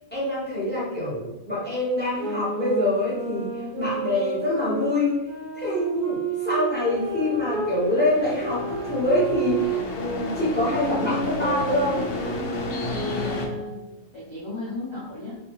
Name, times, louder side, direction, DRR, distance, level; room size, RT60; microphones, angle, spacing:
voice 1, 0.1-3.5 3.8-5.1 5.5-12.0, left 1 dB, 10° left, -7 dB, 0.9 m, -25 dB
sound 1, 2.2-7.7 8.4-13.9, right 4 dB, 80° right, 1.1 m, -31 dB
sound 2, 6.9-13.5, left 3 dB, 75° left, 0.9 m, -33 dB
voice 2, 13.1-13.8 14.1-15.4, left 2 dB, 30° left, -9 dB, 0.5 m, -35 dB
3.1 x 2.1 x 3.0 m, 0.96 s
omnidirectional pair, 1.4 m